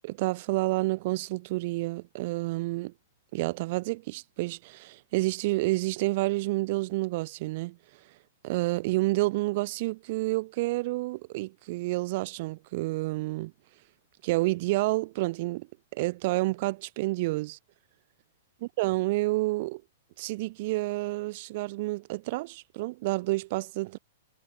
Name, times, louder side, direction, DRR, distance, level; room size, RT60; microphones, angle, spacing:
voice 1, 0.0-2.9 3.3-7.8 8.4-13.5 14.2-17.6 18.6-19.8 20.2-24.0, right 21 dB, 50° right, 1.4 m, -29 dB
hypercardioid pair, 120°, 0 cm